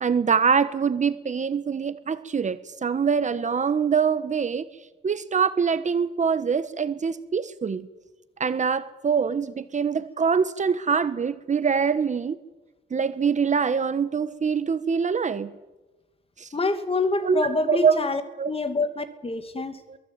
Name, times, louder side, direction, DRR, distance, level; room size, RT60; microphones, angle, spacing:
voice 1, 0.0-4.7 5.0-7.9 8.4-12.4 12.9-15.5 16.4-16.5 17.2-18.0 18.4-18.5 19.9-20.0, right 6 dB, 35° right, 12 dB, 1.4 m, -24 dB
voice 2, 16.5-19.8, left 3 dB, 30° left, 10 dB, 2.6 m, -26 dB
23.0 x 16.0 x 9.0 m, 1.1 s
cardioid pair, 90°, 20 cm